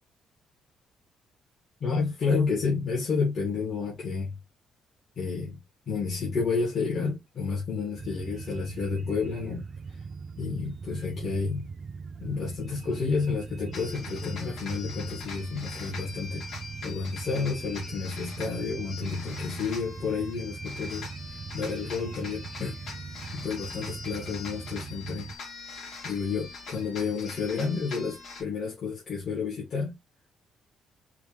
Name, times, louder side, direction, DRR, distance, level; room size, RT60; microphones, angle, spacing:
voice 1, 1.8-4.4 5.2-5.6 5.9-9.7 10.4-11.6 12.2-16.5 16.8-22.7 23.3-25.3 26.0-30.0, left 5 dB, 40° left, 1.8 m, -30 dB
sound 1, 8.0-25.4, right 5 dB, 35° right, 0.4 m, -41 dB
sound 2, 13.7-28.4, left 4 dB, 55° left, 2.5 m, -42 dB
5.0 x 2.7 x 3.0 m
cardioid pair, 165°, 0 cm